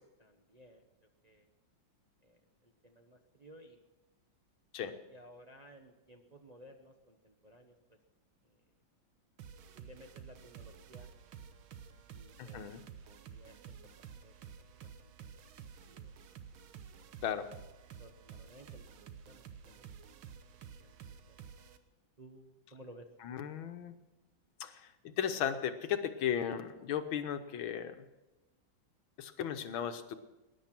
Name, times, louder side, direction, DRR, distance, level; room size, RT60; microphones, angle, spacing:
voice 1, 0.2-0.9 1.2-1.5 2.2-3.8 5.1-8.0 8.4-8.6 9.7-11.1 12.1-12.6 13.0-13.5 14.2-14.3 14.7-15.1 15.4-15.5 15.9-16.1 16.9-17.2 18.0-20.4 20.8-21.0 21.3-21.4 22.2-23.1, right 1 dB, 30° right, 3 dB, 0.8 m, -57 dB
sound 1, 9.4-21.8, right 7 dB, 90° right, 1.8 m, -52 dB
voice 2, 12.4-12.8 17.2-17.5 23.2-24.0 24.6-28.1 29.2-30.2, left 9 dB, 80° left, 8 dB, 1.8 m, -36 dB
19.5 x 10.5 x 6.0 m, 1.0 s
omnidirectional pair, 2.2 m